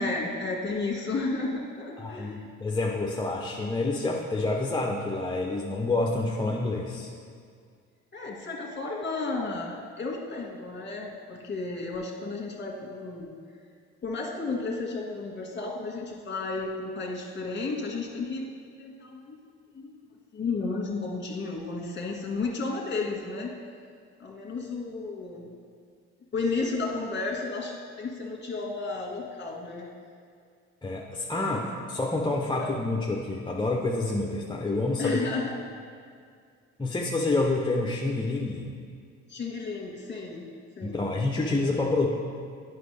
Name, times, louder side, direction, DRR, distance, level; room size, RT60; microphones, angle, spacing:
voice 1, 0.0-2.4 8.1-13.3 14.0-18.4 18.8-19.4 19.7-20.0 20.3-23.6 24.2-25.5 26.3-29.9 31.5-31.8 32.5-32.7 35.0-35.5 39.3-40.5 40.8-41.1 41.5-41.9, left 3 dB, 30° left, -1 dB, 1.7 m, -33 dB
voice 2, 2.0-7.1 30.8-35.2 36.8-38.7 40.8-42.1, left 2 dB, 15° left, -2 dB, 0.7 m, -28 dB
9.2 x 6.0 x 3.4 m, 2.2 s
supercardioid pair, 70°, 34 cm